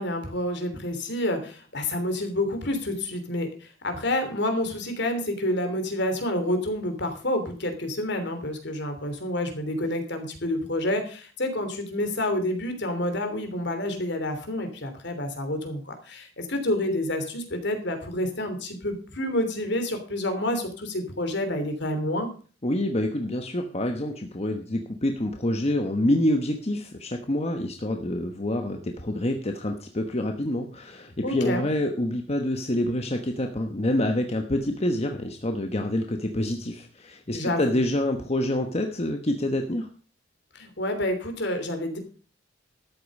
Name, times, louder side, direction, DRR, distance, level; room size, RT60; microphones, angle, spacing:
voice 1, 0.0-22.3 31.2-31.6 37.3-37.8 40.5-42.0, left 1 dB, 60° left, 7 dB, 3.2 m, -28 dB
voice 2, 22.6-39.9, left 1 dB, 35° left, 5 dB, 1.2 m, -27 dB
13.0 x 8.7 x 5.4 m, 0.39 s
head